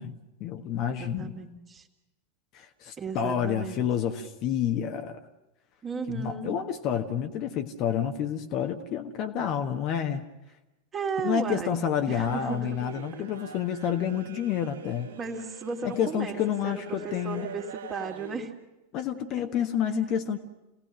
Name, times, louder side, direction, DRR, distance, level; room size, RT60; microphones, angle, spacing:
voice 1, 0.0-1.3 2.5-5.2 6.1-10.2 11.2-15.1 15.8-17.5 18.9-20.4, left 9 dB, 40° left, 6 dB, 1.5 m, -29 dB
voice 2, 1.0-1.9 3.0-3.9 5.8-6.5 10.9-12.8 15.2-16.3 16.6-18.5, right 4 dB, 25° right, 3 dB, 2.7 m, -35 dB
sound 1, 12.1-18.5, right 8 dB, 60° right, 1.0 m, -44 dB
28.0 x 18.0 x 6.4 m, 1.0 s
figure-of-eight pair, 90°, 0 cm